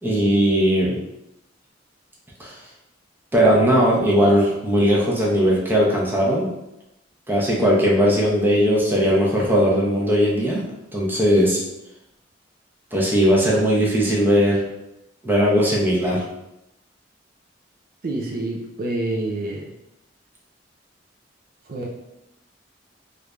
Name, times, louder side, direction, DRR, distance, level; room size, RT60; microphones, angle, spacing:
voice 1, 0.0-1.0 2.4-2.6 3.3-6.5 7.3-10.7 10.9-11.6 12.9-14.6 15.2-16.2, equal, 10° right, -4 dB, 0.7 m, -18 dB
voice 2, 18.0-19.7 21.6-21.9, right 2 dB, 55° right, -1 dB, 0.4 m, -27 dB
3.1 x 2.5 x 3.3 m, 0.88 s
head